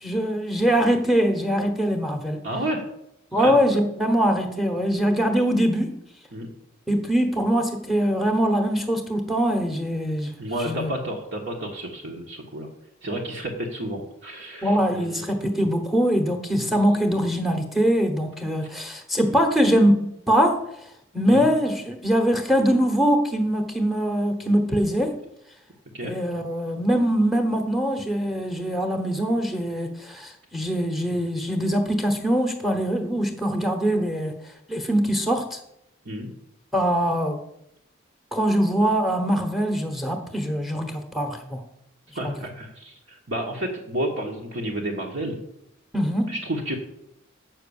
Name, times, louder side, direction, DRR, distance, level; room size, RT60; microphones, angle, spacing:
voice 1, 0.0-2.4 3.3-6.0 6.9-10.3 10.6-10.9 14.6-20.8 21.1-25.2 26.0-34.3 34.7-35.6 36.7-37.4 38.3-41.6 42.2-42.5 45.9-46.4, equal, ahead, 6 dB, 1.1 m, -23 dB
voice 2, 2.4-2.9 3.3-3.5 6.3-6.5 10.4-12.7 13.0-15.3 16.5-16.7 21.3-21.5 25.9-26.2 36.0-36.3 42.1-45.4 46.3-46.8, right 1 dB, 60° right, -2 dB, 1.3 m, -31 dB
7.6 x 6.0 x 7.0 m, 0.80 s
head